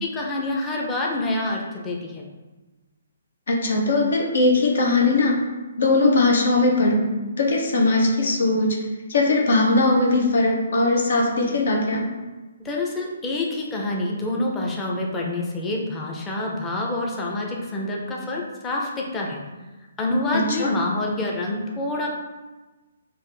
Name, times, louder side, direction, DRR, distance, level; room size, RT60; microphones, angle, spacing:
voice 1, 0.0-2.2 12.6-19.4 20.0-22.1, left 2 dB, 15° left, -2 dB, 0.6 m, -27 dB
voice 2, 3.5-5.3 5.8-8.8 9.1-12.0 20.3-20.7, left 2 dB, 65° left, 0 dB, 0.8 m, -20 dB
5.4 x 2.5 x 3.3 m, 1.2 s
hypercardioid pair, 160°, 0 cm